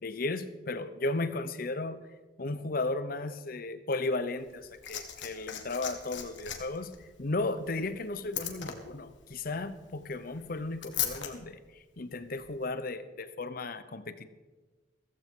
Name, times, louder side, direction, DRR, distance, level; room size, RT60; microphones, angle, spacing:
voice 1, 0.0-2.0 2.4-6.9 7.2-11.6 12.0-14.3, left 2 dB, 50° left, 12 dB, 0.8 m, -35 dB
Liquid, 4.4-11.3 12.4-12.5, left 10 dB, 85° left, 1.7 m, -39 dB
15.0 x 15.0 x 3.8 m, 1.3 s
head